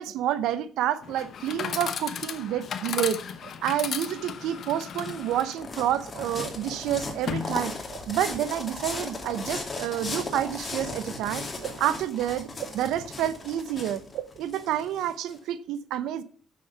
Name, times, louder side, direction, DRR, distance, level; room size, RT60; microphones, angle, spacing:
voice 1, 0.0-16.2, right 11 dB, 90° right, 0.7 m, -29 dB
Chatter / Coin (dropping), 1.0-8.0, left 7 dB, 65° left, 0.9 m, -36 dB
sound 1, 4.5-15.3, left 2 dB, 30° left, 2.3 m, -37 dB
8.8 x 6.3 x 5.8 m
cardioid pair, 90°, 0 cm